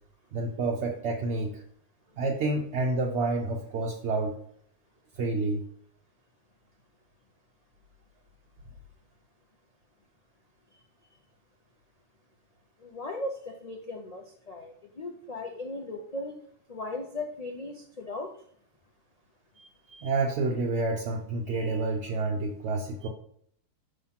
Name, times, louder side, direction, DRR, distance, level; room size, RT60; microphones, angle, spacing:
voice 1, 0.3-1.6 2.2-4.4 5.2-5.6 19.6-23.1, right 3 dB, 55° right, 0 dB, 0.8 m, -29 dB
voice 2, 12.8-16.4 16.7-18.3, left 2 dB, 70° left, 2 dB, 0.3 m, -37 dB
5.6 x 3.2 x 5.6 m, 0.64 s
omnidirectional pair, 1.6 m